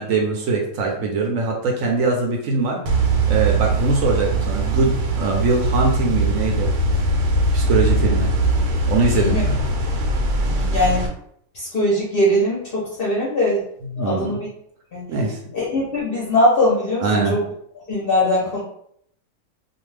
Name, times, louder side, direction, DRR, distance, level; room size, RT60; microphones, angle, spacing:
voice 1, 0.0-6.7 7.5-8.3 8.9-9.5 13.8-14.4 15.1-15.4 17.0-17.4, right 3 dB, 70° right, 1 dB, 0.9 m, -22 dB
sound 1, 2.9-11.1, right 2 dB, 90° right, 1.1 m, -21 dB
voice 2, 9.1-9.4 10.5-11.1 11.5-13.6 14.0-14.5 14.9-15.0 15.5-17.4 17.9-18.6, left 1 dB, 50° left, -5 dB, 0.7 m, -21 dB
2.5 x 2.3 x 3.2 m, 0.68 s
omnidirectional pair, 1.6 m